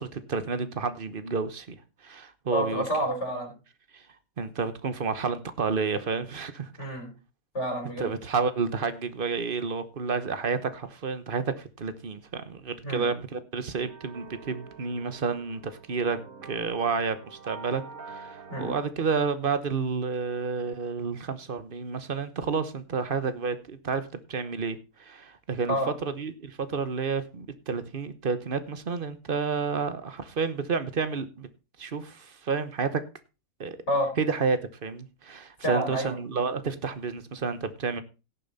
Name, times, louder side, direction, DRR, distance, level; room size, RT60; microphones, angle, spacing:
voice 1, 0.0-1.8 2.0-2.8 3.9-4.0 4.4-6.7 8.0-25.8 26.0-31.5 31.8-33.0 33.6-33.8 34.2-38.0, right 5 dB, 40° right, 1.2 m, -30 dB
voice 2, 2.5-3.5 6.8-7.1 7.5-8.1 12.8-13.1 18.5-18.7 25.7-25.9 33.9-34.1 35.6-36.2, equal, 55° left, 4.4 m, -28 dB
sound 1, 13.9-18.9, right 4 dB, 80° right, 1.9 m, -46 dB
16.5 x 7.1 x 4.1 m
omnidirectional pair, 1.4 m